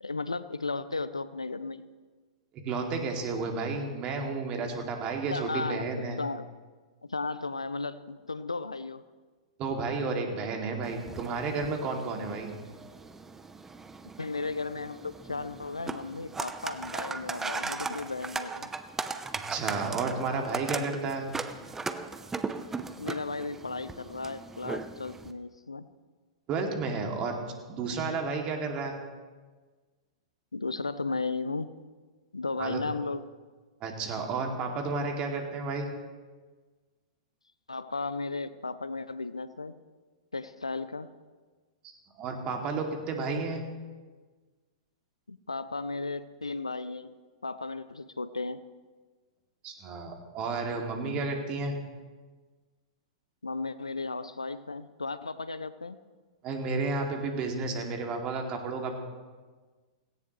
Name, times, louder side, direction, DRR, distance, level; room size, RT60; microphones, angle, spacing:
voice 1, 0.0-1.9 5.3-6.5 7.0-9.0 14.2-18.7 23.0-25.9 30.5-31.7 32.3-33.2 37.7-39.8 40.3-41.1 45.3-47.1 47.4-48.6 53.4-56.0, left 3 dB, 85° left, 15 dB, 0.6 m, -35 dB
voice 2, 2.5-6.2 9.6-12.5 19.3-21.2 26.5-27.4 27.7-28.9 32.6-32.8 33.8-35.9 41.8-43.6 49.6-51.8 56.4-58.9, right 4 dB, 35° right, 2 dB, 2.4 m, -32 dB
sound 1, 10.8-25.3, right 4 dB, 10° right, 0.7 m, -38 dB
17.0 x 17.0 x 3.2 m, 1.4 s
figure-of-eight pair, 105°, 3 cm